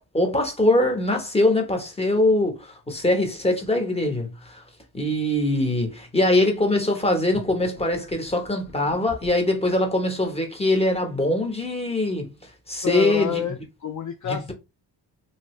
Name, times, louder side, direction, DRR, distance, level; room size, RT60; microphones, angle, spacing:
voice 1, 0.1-4.6 4.9-12.3 12.7-13.4, left 1 dB, 15° left, 1.0 m, -22 dB
sound 1, 7.3-9.5, left 2 dB, 65° left, 1.5 m, -43 dB
voice 2, 12.8-14.5, left 9 dB, 45° left, 0.4 m, -28 dB
2.8 x 2.6 x 3.1 m
cardioid pair, 90°, 42 cm